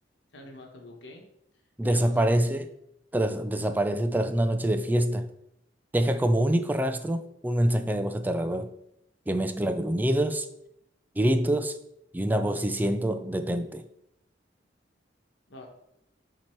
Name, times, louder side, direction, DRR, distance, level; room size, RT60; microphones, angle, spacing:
voice 1, 0.3-1.3 1.8-2.3 15.5-15.7, left 1 dB, 85° left, 1.1 m, -45 dB
voice 2, 1.8-2.7 3.1-5.3 5.9-8.7 9.3-10.5 11.2-11.8 12.1-13.8, right 1 dB, 10° right, 0.3 m, -25 dB
7.4 x 2.9 x 4.4 m
head